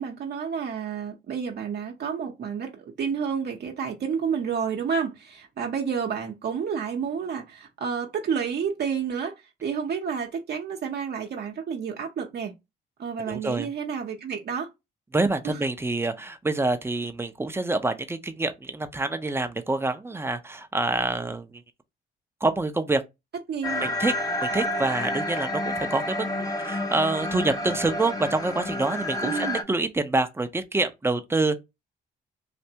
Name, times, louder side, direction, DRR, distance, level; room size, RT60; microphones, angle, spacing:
voice 1, 0.0-9.3 9.6-12.5 13.0-14.7 15.4-15.6 23.5-24.0 29.2-29.6, right 6 dB, 55° right, 0.8 m, -30 dB
voice 2, 13.3-13.7 15.1-21.6 22.4-23.0 23.8-24.1 24.4-31.6, right 2 dB, 10° right, 0.6 m, -26 dB
sound 1, 23.6-29.6, left 1 dB, 20° left, 0.8 m, -29 dB
3.3 x 2.6 x 2.8 m
cardioid pair, 90°, 20 cm